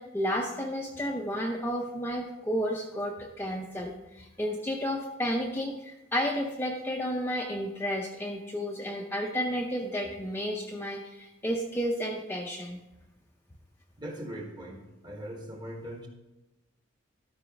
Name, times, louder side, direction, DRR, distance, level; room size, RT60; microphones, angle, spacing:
voice 1, 0.0-12.8, equal, 10° left, 0 dB, 0.5 m, -32 dB
voice 2, 14.0-16.1, right 1 dB, 20° right, 2 dB, 1.2 m, -40 dB
12.5 x 4.9 x 5.1 m, 0.98 s
head